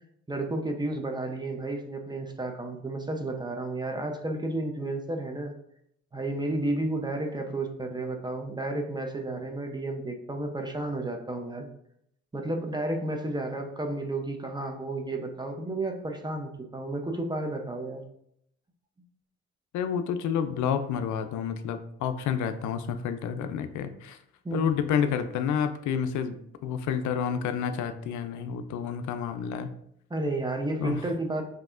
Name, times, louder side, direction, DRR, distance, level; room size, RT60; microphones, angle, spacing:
voice 1, 0.3-5.5 6.1-11.7 12.3-18.0 24.4-24.8 30.1-31.4, right 2 dB, 15° right, 4 dB, 0.6 m, -32 dB
voice 2, 19.7-24.2 24.5-26.4 26.6-29.7 30.8-31.0, left 7 dB, 75° left, 9 dB, 0.4 m, -29 dB
5.6 x 2.7 x 2.5 m, 0.74 s
cardioid pair, 90°, 30 cm